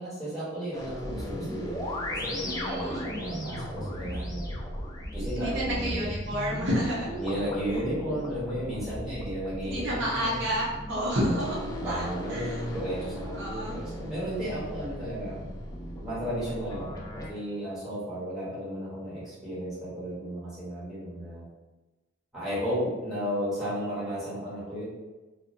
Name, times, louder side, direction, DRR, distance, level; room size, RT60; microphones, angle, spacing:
voice 1, 0.0-4.6 5.1-6.1 7.1-10.3 11.3-15.5 16.0-21.4 22.3-24.8, equal, ahead, -11 dB, 1.1 m, -34 dB
sound 1, 0.7-17.3, equal, 20° left, 0.4 m, -37 dB
voice 2, 2.4-3.1 5.4-7.1 9.6-11.6 11.9-12.6 13.3-13.8, equal, 60° right, -5 dB, 0.6 m, -30 dB
2.5 x 2.1 x 2.6 m, 1.2 s
head